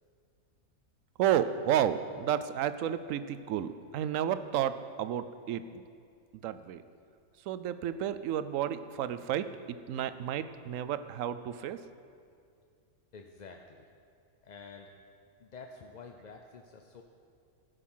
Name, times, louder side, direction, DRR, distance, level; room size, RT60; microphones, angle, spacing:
voice 1, 1.2-5.8 6.4-6.8 7.5-11.8, right 10 dB, 80° right, 12 dB, 1.0 m, -31 dB
voice 2, 13.1-13.8 14.4-14.9 15.4-17.0, left 4 dB, 50° left, 3 dB, 0.5 m, -49 dB
16.0 x 6.8 x 5.6 m, 2.3 s
omnidirectional pair, 1.4 m